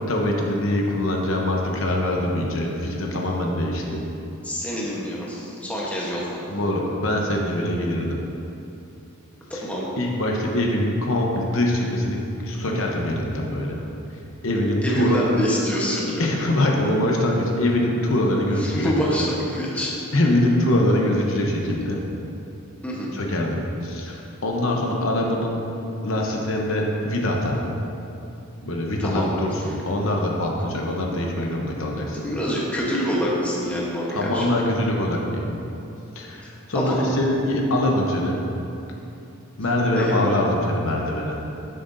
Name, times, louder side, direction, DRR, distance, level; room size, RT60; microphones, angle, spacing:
voice 1, 0.0-4.0 6.5-8.2 9.5-9.6 10.0-12.2 12.4-13.8 14.4-15.3 16.2-19.2 19.8-19.9 20.1-22.0 23.1-25.6 26.0-27.7 28.6-32.3 34.1-35.5 36.1-38.5 39.6-41.4, left 1 dB, 65° left, -1 dB, 0.9 m, -23 dB
voice 2, 4.4-6.5 9.5-9.9 14.8-16.3 18.6-20.0 22.8-23.1 29.0-29.3 29.6-29.8 32.2-34.5 36.7-37.1 39.8-40.3, equal, 5° left, -5 dB, 1.1 m, -26 dB
10.0 x 7.8 x 2.7 m, 2.8 s
head